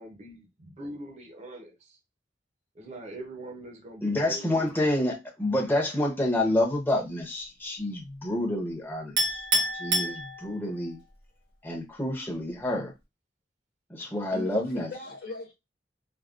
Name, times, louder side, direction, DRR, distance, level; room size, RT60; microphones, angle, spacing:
voice 1, 0.0-2.0 2.7-4.7, right 1 dB, 40° right, 0.6 m, -42 dB
voice 2, 4.0-9.5 9.8-11.0 11.6-12.9 13.9-14.9, left 1 dB, 10° left, 0.7 m, -28 dB
Chink clink, 9.2-10.8, right 1 dB, 85° right, 1.2 m, -27 dB
voice 3, 14.0-15.5, left 3 dB, 60° left, 0.6 m, -40 dB
3.4 x 2.2 x 2.4 m
head